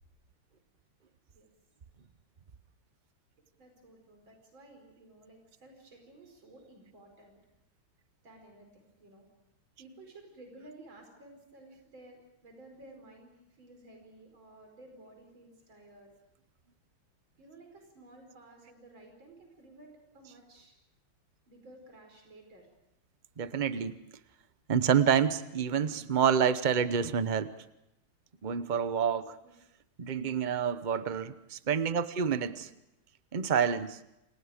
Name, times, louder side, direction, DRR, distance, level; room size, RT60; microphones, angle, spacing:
voice 1, 3.6-7.4 8.2-9.3 9.8-16.1 17.4-20.7 21.5-22.7 29.4-29.5 32.4-32.7, right 2 dB, 65° right, 5.7 m, -54 dB
voice 2, 23.4-24.0 24.7-27.5 28.4-29.4 30.0-32.5 33.3-34.0, right 7 dB, 85° right, 0.4 m, -28 dB
29.0 x 27.5 x 5.1 m
omnidirectional pair, 2.3 m